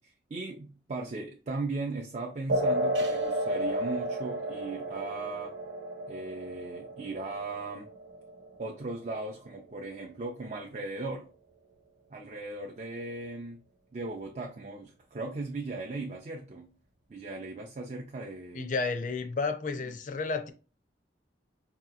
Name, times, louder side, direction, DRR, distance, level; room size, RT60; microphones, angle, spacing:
voice 1, 0.0-5.6 6.1-7.9 8.6-11.3 12.1-13.6 13.9-16.7 17.1-18.7, right 3 dB, 40° right, 0.4 m, -37 dB
sound 1, 2.5-9.5, right 1 dB, 85° right, 0.9 m, -33 dB
voice 2, 18.5-20.5, left 4 dB, 45° left, 0.5 m, -31 dB
4.8 x 2.8 x 2.4 m
head